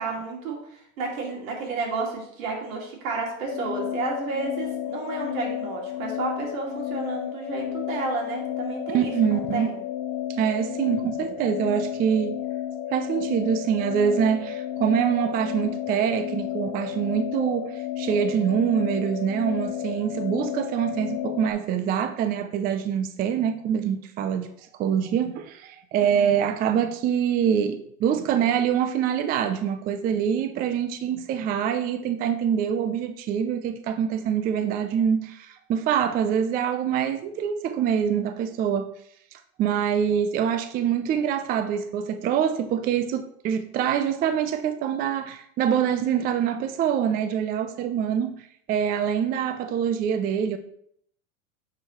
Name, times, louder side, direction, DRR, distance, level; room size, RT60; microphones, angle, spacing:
voice 1, 0.0-9.8 26.0-26.4, right 3 dB, 75° right, 2.6 m, -31 dB
sound 1, 3.5-21.5, left 11 dB, 50° left, 1.0 m, -32 dB
voice 2, 8.9-9.7 10.4-12.4 12.9-24.5 24.8-38.9 39.3-48.4 48.7-50.6, right 8 dB, 25° right, 0.3 m, -25 dB
9.5 x 4.8 x 3.0 m
supercardioid pair, 115°, 41 cm